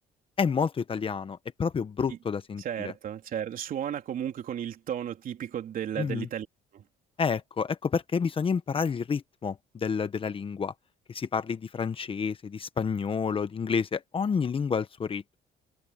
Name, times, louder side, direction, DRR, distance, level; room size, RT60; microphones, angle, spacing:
voice 1, 0.4-2.9 6.0-6.3 7.2-10.7 11.1-15.4, left 6 dB, 30° left, 1.2 m, -29 dB
voice 2, 2.6-6.5 6.7-6.8, right 9 dB, 55° right, 3.5 m, -34 dB
cardioid pair, 110°, 17 cm